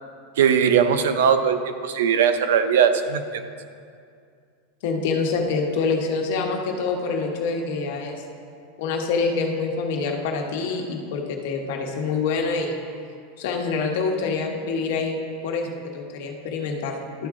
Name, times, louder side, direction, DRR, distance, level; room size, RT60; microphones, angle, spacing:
voice 1, 0.4-3.4, right 7 dB, 90° right, 9 dB, 0.5 m, -20 dB
voice 2, 4.8-8.2 8.8-12.8 13.4-15.2 15.4-17.3, left 4 dB, 60° left, 2 dB, 1.1 m, -26 dB
12.0 x 4.8 x 3.6 m, 2.3 s
supercardioid pair, 165°, 0 cm